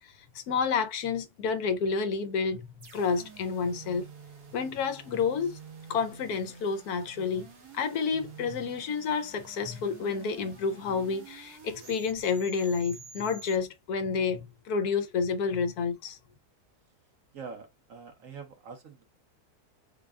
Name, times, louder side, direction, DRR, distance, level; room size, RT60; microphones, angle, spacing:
voice 1, 0.3-2.7 2.9-4.1 4.5-5.6 5.9-7.5 7.7-16.2, left 5 dB, 75° left, 1.1 m, -29 dB
sound 1, 2.8-13.6, right 4 dB, 75° right, 1.9 m, -49 dB
voice 2, 17.3-19.0, right 5 dB, 60° right, 1.3 m, -44 dB
3.9 x 2.3 x 3.5 m
omnidirectional pair, 1.7 m